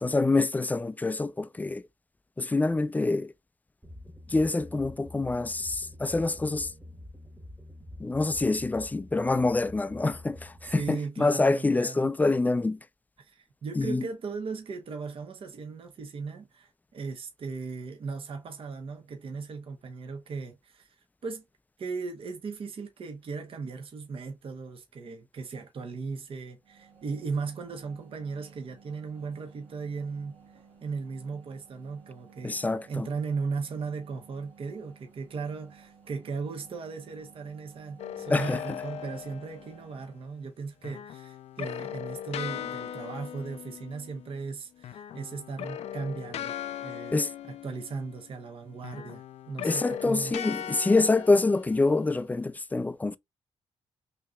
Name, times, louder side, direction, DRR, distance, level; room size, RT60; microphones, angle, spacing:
voice 1, 0.0-1.8 2.4-3.3 4.3-6.7 8.0-12.8 13.8-14.1 32.4-33.1 38.3-38.6 47.1-47.3 49.6-53.2, left 3 dB, 15° left, 0.4 m, -26 dB
sound 1, 3.8-10.9, left 1 dB, 10° right, 1.2 m, -47 dB
voice 2, 10.7-12.1 13.2-21.0 21.2-21.4 21.8-30.4 30.8-50.3, right 4 dB, 55° right, 1.0 m, -37 dB
sound 2, 26.6-40.2, right 6 dB, 75° right, 1.6 m, -56 dB
sound 3, 38.0-39.9 40.8-44.5 44.8-48.4 48.8-52.3, left 10 dB, 75° left, 0.4 m, -39 dB
5.6 x 2.9 x 2.3 m
cardioid pair, 90°, 11 cm